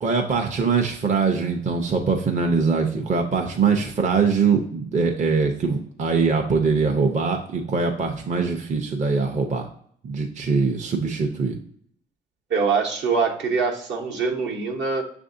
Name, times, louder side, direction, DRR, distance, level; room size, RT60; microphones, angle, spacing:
voice 1, 0.0-9.7 10.0-11.6, right 5 dB, 40° right, 3 dB, 0.6 m, -22 dB
voice 2, 12.5-15.0, right 5 dB, 65° right, 1 dB, 0.9 m, -23 dB
6.5 x 2.6 x 2.5 m, 0.63 s
cardioid pair, 90°, 20 cm